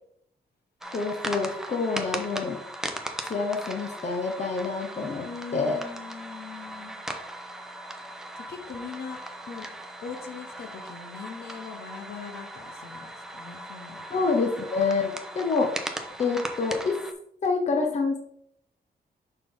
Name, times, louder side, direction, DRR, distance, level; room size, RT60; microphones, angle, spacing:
sound 1, 0.8-17.1, right 1 dB, 5° right, 0.8 m, -38 dB
voice 1, 0.9-2.6 3.2-5.3 5.5-5.8 14.1-15.7 16.2-17.0 17.4-18.2, left 4 dB, 45° left, 3 dB, 0.9 m, -27 dB
voice 2, 5.2-7.0 8.3-9.6 10.0-14.2, left 5 dB, 70° left, 4 dB, 1.2 m, -41 dB
6.6 x 5.4 x 3.7 m, 0.69 s
wide cardioid pair, 145°, 17 cm